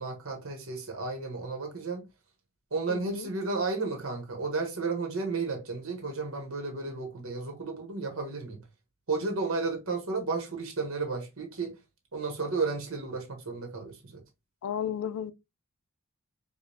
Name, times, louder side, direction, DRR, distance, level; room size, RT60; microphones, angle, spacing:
voice 1, 0.0-2.1 2.7-8.6 9.1-11.8 12.1-14.2, right 4 dB, 70° right, 1.1 m, -33 dB
voice 2, 2.9-3.3 14.6-15.3, left 8 dB, 80° left, 0.3 m, -33 dB
5.0 x 2.3 x 2.7 m
head